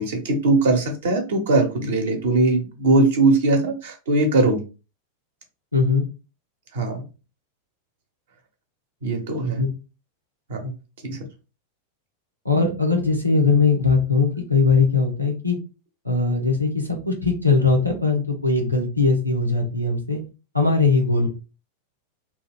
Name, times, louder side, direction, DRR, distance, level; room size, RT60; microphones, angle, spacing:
voice 1, 0.0-4.6 6.7-7.0 9.0-9.6 10.5-10.7 11.0-11.2, right 2 dB, 60° right, 4 dB, 0.8 m, -20 dB
voice 2, 5.7-6.1 9.6-9.7 12.4-15.6 16.0-20.2 20.5-21.3, left 4 dB, 90° right, 1 dB, 0.7 m, -20 dB
2.7 x 2.4 x 3.5 m, 0.31 s
figure-of-eight pair, 90°, 0 cm